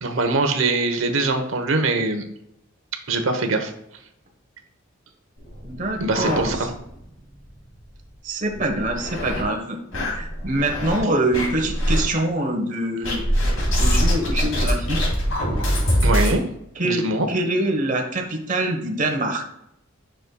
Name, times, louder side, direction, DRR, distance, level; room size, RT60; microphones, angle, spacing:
voice 1, 0.0-2.2 3.1-3.7 6.0-6.7 16.0-16.4 16.8-17.3, right 2 dB, 75° right, 6 dB, 1.1 m, -22 dB
sound 1, 5.4-7.0 7.3-7.4 7.8-7.9 8.5-9.4 9.9-11.0 11.3-12.0 13.0-16.4, equal, 80° left, 2.9 m, -23 dB
voice 2, 5.6-6.7 8.2-9.8 10.1-13.2 13.8-15.0 16.8-17.0 17.3-19.4, right 1 dB, 40° right, 3 dB, 1.2 m, -24 dB
9.4 x 6.4 x 2.3 m, 0.79 s
head